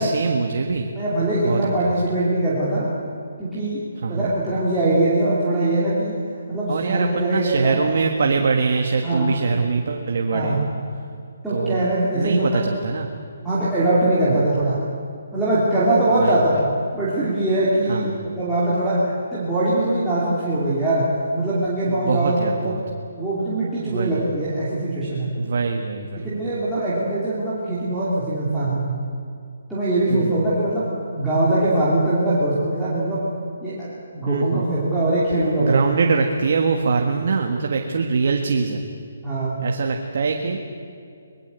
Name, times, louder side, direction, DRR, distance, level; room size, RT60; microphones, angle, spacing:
voice 1, 0.0-0.9 1.4-1.9 4.0-4.3 6.7-10.7 11.5-11.8 12.1-13.1 14.3-14.5 16.2-16.6 17.9-18.2 21.9-22.8 23.9-24.2 25.4-26.5 30.1-30.5 34.3-34.7 35.6-38.8 39.6-40.6, right 4 dB, 40° right, 3 dB, 1.6 m, -23 dB
voice 2, 1.0-2.9 3.4-3.8 4.1-6.1 6.5-7.8 9.0-9.3 10.3-10.6 11.4-12.6 13.4-14.8 15.3-16.6 16.9-19.0 19.3-21.0 21.3-22.7 23.2-25.3 26.1-29.0 29.7-30.8 31.2-33.2 33.6-33.8 34.1-35.8 39.2-39.6, right 1 dB, ahead, -14 dB, 2.8 m, -22 dB
25.0 x 21.0 x 8.2 m, 2.4 s
hypercardioid pair, 180°, 0 cm